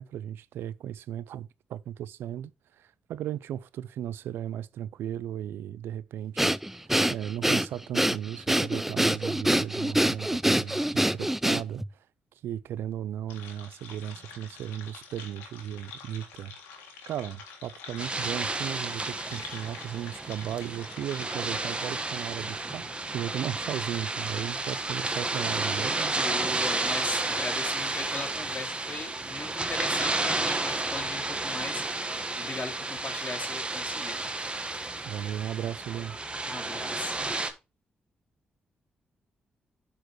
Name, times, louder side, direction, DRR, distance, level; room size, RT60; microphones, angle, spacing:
voice 1, 0.0-2.5 2.8-12.0 12.4-16.6 17.1-22.8 23.1-26.1 35.0-36.2, right 11 dB, 80° right, 0.3 m, -36 dB
Breathing, 6.4-11.9, right 1 dB, 5° right, 0.4 m, -25 dB
sound 1, 13.3-21.9, left 5 dB, 90° left, 1.6 m, -47 dB
sound 2, 18.0-37.5, right 2 dB, 25° right, 1.3 m, -31 dB
voice 2, 26.0-34.2 36.4-37.2, left 3 dB, 45° left, 2.4 m, -39 dB
11.5 x 4.5 x 3.1 m
supercardioid pair, 50°, 4 cm